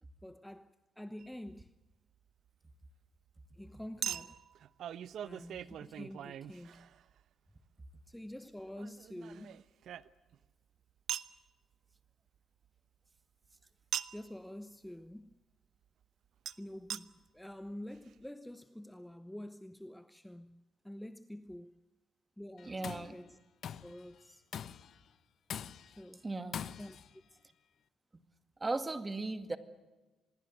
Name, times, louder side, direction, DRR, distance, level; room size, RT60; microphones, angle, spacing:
voice 1, 0.2-1.7 3.5-4.4 5.2-6.9 8.1-9.6 14.1-15.4 16.6-21.8 22.4-23.4 23.8-24.4 25.8-26.2 26.8-27.0 27.3-27.4, left 1 dB, 5° left, 0.9 m, -48 dB
Chink clink, 1.2-1.3 4.0-7.2 8.8-10.4 11.1-11.4 13.9-14.3 16.5-16.6 16.9-17.0 17.7-17.8 17.9-18.0, right 10 dB, 70° right, 0.9 m, -41 dB
Tools, 22.6-23.1 23.6-24.0 24.5-25.0 25.5-26.0 26.5-27.1, left 8 dB, 60° left, 0.9 m, -43 dB
voice 2, 22.6-23.2 26.2-26.6 28.6-29.6, right 2 dB, 20° right, 2.2 m, -37 dB
26.0 x 20.5 x 8.0 m
cardioid pair, 90°, 0 cm